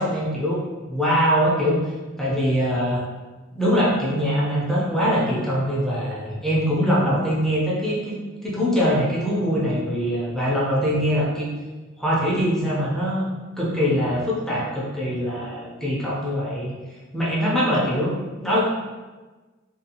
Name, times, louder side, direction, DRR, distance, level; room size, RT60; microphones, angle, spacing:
voice 1, 0.0-1.8 2.2-3.0 3.6-11.5 12.0-13.3 13.6-16.7 17.1-18.6, equal, ahead, -6 dB, 0.5 m, -23 dB
2.6 x 2.3 x 2.8 m, 1.3 s
head